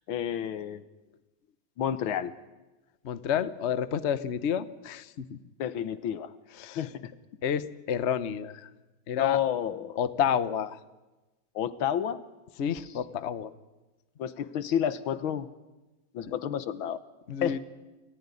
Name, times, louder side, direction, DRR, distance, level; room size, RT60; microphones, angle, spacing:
voice 1, 0.1-0.8 1.8-2.3 5.6-6.3 6.8-7.1 9.2-10.0 11.6-12.2 14.2-15.5 16.1-17.0 17.4-17.6, left 9 dB, 70° left, 14 dB, 1.7 m, -30 dB
voice 2, 3.0-5.4 6.6-6.8 7.4-8.7 9.1-9.4 10.0-10.8 12.6-13.5 17.3-17.6, left 8 dB, 55° left, 14 dB, 0.8 m, -30 dB
29.5 x 15.0 x 9.8 m, 1.1 s
omnidirectional pair, 2.4 m